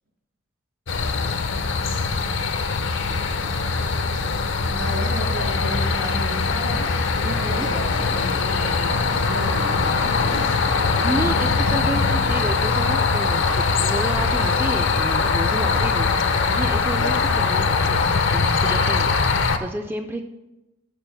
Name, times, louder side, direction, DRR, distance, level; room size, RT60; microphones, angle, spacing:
sound 1, 0.9-19.6, left 4 dB, 65° left, 0.6 m, -22 dB
voice 1, 4.7-6.9 7.4-10.4 16.0-16.5 17.1-17.2, equal, 75° right, -3 dB, 3.3 m, -33 dB
voice 2, 7.2-7.7 10.7-20.2, right 1 dB, 10° right, 5 dB, 0.3 m, -31 dB
6.8 x 6.1 x 5.7 m, 0.99 s
head